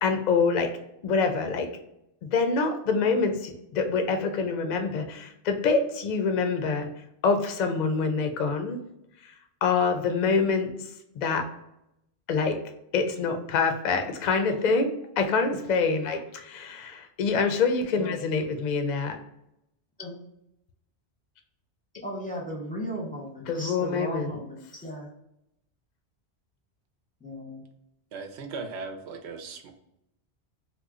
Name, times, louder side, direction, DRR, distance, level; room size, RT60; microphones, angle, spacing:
voice 1, 0.0-0.7 1.0-1.7 2.2-6.9 7.2-8.8 9.2-9.3 9.6-11.5 12.3-12.6 12.9-14.9 15.2-19.2 23.5-24.4, left 4 dB, 55° left, 6 dB, 0.5 m, -26 dB
voice 2, 22.0-25.1 27.2-27.6, equal, 10° left, -3 dB, 0.6 m, -36 dB
voice 3, 28.1-29.7, right 4 dB, 70° right, 5 dB, 0.8 m, -38 dB
2.9 x 2.1 x 3.6 m, 0.80 s
omnidirectional pair, 1.2 m